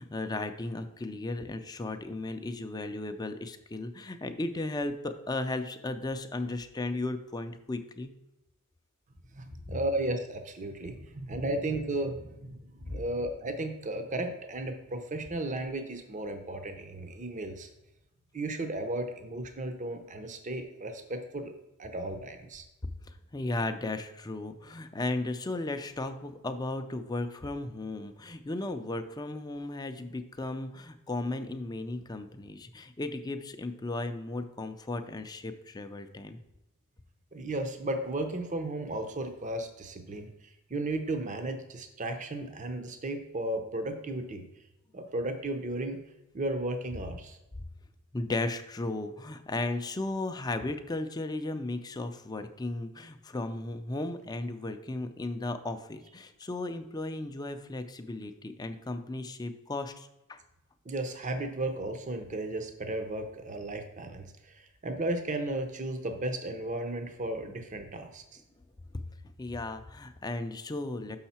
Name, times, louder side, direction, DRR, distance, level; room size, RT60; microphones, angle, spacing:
voice 1, 0.0-8.1 12.8-13.0 23.0-36.4 48.1-60.4 68.9-69.0 69.4-71.2, left 2 dB, 20° left, 7 dB, 0.5 m, -35 dB
voice 2, 9.3-17.7 18.3-21.5 21.8-22.6 37.3-40.3 40.7-44.4 44.9-46.0 46.3-47.4 60.9-64.2 64.8-68.2, right 1 dB, 35° right, 7 dB, 0.7 m, -34 dB
6.5 x 5.6 x 4.3 m, 0.93 s
head